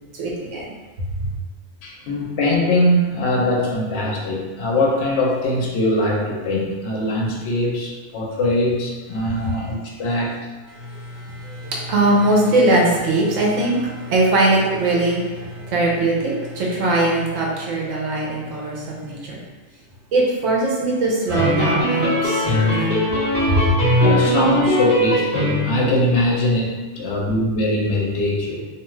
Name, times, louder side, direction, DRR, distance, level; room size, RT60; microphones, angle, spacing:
voice 1, 0.2-0.7 10.7-19.4 20.1-22.7 23.5-23.8, right 2 dB, 80° right, -4 dB, 1.0 m, -21 dB
voice 2, 1.8-10.4 22.6-22.8 24.0-28.6, left 1 dB, 65° left, -2 dB, 0.8 m, -21 dB
sound 1, 21.3-25.9, equal, 45° right, 1.0 m, -20 dB
2.5 x 2.3 x 3.1 m, 1.2 s
omnidirectional pair, 1.3 m